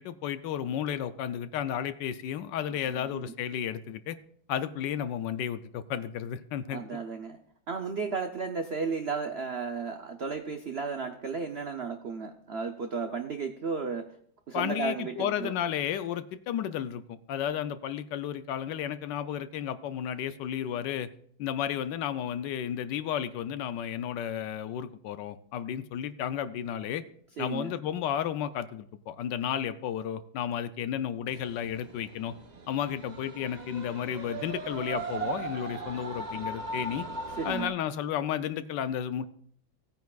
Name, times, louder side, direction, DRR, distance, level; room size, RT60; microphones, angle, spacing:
voice 1, 0.0-4.2 4.5-6.8 14.5-21.1 21.4-27.0 27.4-32.3 32.7-37.0 37.4-39.3, left 9 dB, 75° left, 12 dB, 1.2 m, -33 dB
voice 2, 2.9-3.2 6.7-7.4 7.7-14.1 14.5-15.5 27.4-27.7 37.4-37.7, right 5 dB, 70° right, 5 dB, 0.6 m, -34 dB
sound 1, 31.3-37.7, right 3 dB, 35° right, 0.7 m, -38 dB
17.5 x 9.2 x 2.4 m, 0.63 s
omnidirectional pair, 2.0 m